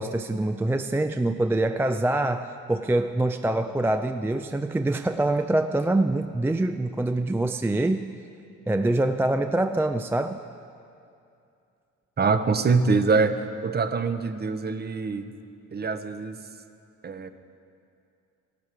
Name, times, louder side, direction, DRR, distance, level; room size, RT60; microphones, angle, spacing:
voice 1, 0.0-8.1 8.7-10.4, right 2 dB, 10° right, 8 dB, 0.4 m, -25 dB
voice 2, 12.2-15.3 15.7-16.4 17.0-17.3, right 4 dB, 35° right, 10 dB, 0.8 m, -24 dB
15.0 x 12.0 x 4.7 m, 2.5 s
cardioid pair, 90°, 30 cm